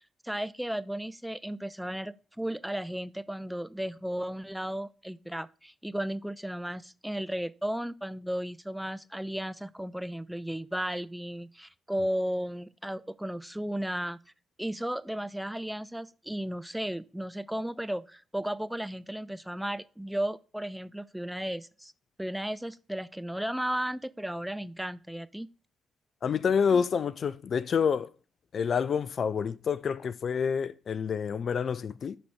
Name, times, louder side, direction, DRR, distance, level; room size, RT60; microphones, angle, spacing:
voice 1, 0.2-14.2 14.6-21.9 22.2-25.5, right 1 dB, 5° right, 0.6 m, -34 dB
voice 2, 26.2-28.1 28.5-32.2, left 6 dB, 50° left, 0.4 m, -28 dB
11.5 x 4.1 x 4.7 m
figure-of-eight pair, 40°, 0 cm